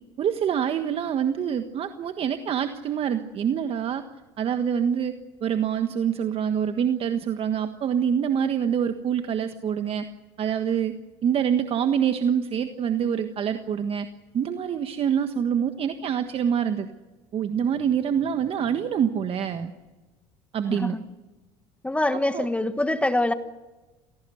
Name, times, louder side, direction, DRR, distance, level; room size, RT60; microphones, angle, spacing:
voice 1, 0.2-4.0 4.4-5.1 5.4-10.1 10.4-10.9 11.2-14.1 14.3-16.9 17.3-19.7 20.5-21.0 22.3-22.5, right 8 dB, 45° right, 1.5 m, -25 dB
voice 2, 20.7-21.0 21.8-23.3, left 1 dB, 10° left, 1.4 m, -24 dB
27.5 x 17.5 x 8.0 m
hypercardioid pair, 80°, 13 cm